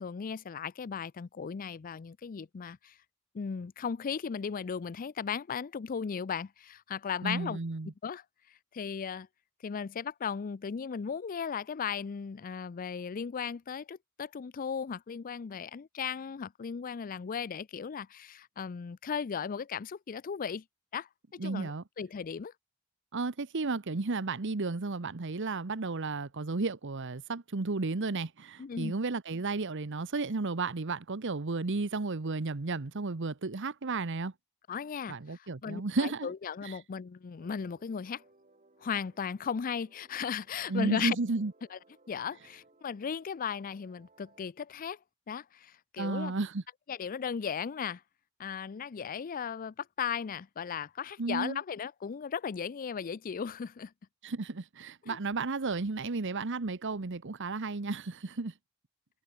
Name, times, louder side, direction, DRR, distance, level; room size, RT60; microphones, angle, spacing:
voice 1, 0.0-2.9 3.3-7.6 8.0-8.2 8.7-9.3 9.6-20.6 20.9-22.5 28.6-28.9 34.7-38.2 38.8-41.2 41.7-41.8 42.1-45.0 45.3-46.3 46.9-48.0 48.4-53.9 55.0-55.2, left 6 dB, 40° left, 0.4 m, -36 dB
voice 2, 7.2-7.9 21.4-21.8 23.1-34.3 35.1-36.3 36.6-36.8 40.7-41.5 46.0-46.6 51.2-51.6 54.2-58.5, right 3 dB, 60° right, 1.0 m, -33 dB
sound 1, 37.4-44.4, right 2 dB, 35° right, 7.8 m, -64 dB
head